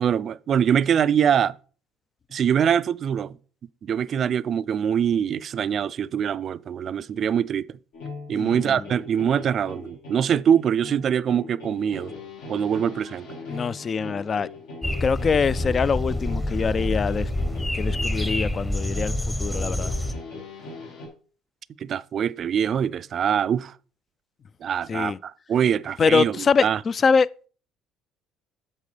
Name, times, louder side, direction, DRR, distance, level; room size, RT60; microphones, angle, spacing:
voice 1, 0.0-1.5 2.3-3.3 3.8-7.7 8.3-12.1 12.5-13.3 21.8-23.7 24.6-26.8, right 8 dB, 50° right, 0.3 m, -23 dB
sound 1, 7.9-21.1, left 3 dB, 75° left, 2.2 m, -40 dB
voice 2, 8.3-8.8 13.5-14.5 15.0-17.3 17.7-19.9 24.9-25.2 26.0-27.5, left 5 dB, 40° left, 0.3 m, -24 dB
sound 2, 14.8-20.1, left 1 dB, 10° left, 0.9 m, -27 dB
8.3 x 6.4 x 3.3 m
hypercardioid pair, 65°, 0 cm